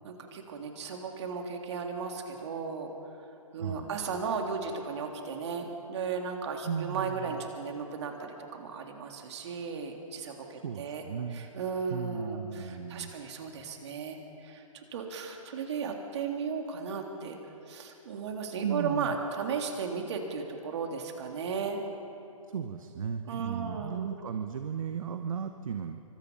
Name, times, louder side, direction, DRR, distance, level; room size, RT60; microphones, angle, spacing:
voice 1, 0.0-2.9 3.5-11.0 11.3-17.4 17.7-21.8 23.3-24.1, right 5 dB, 50° right, 2 dB, 3.4 m, -35 dB
voice 2, 3.6-4.0 6.6-7.4 10.6-11.5 11.9-13.1 18.6-19.2 22.5-26.0, right 7 dB, 65° right, 8 dB, 1.2 m, -35 dB
26.0 x 24.5 x 5.6 m, 2.9 s
hypercardioid pair, 145°, 18 cm